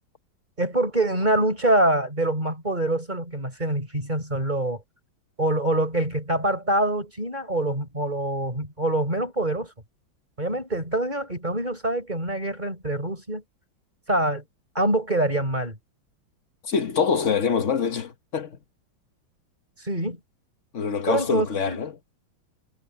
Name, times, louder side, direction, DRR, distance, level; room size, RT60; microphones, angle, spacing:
voice 1, 0.6-4.8 5.4-9.7 10.4-13.4 14.1-14.4 14.7-15.8 19.8-20.2 21.1-21.8, right 1 dB, 20° right, 6.2 m, -25 dB
voice 2, 16.6-18.6 20.7-21.9, left 6 dB, 45° left, 1.1 m, -25 dB
omnidirectional pair, 2.2 m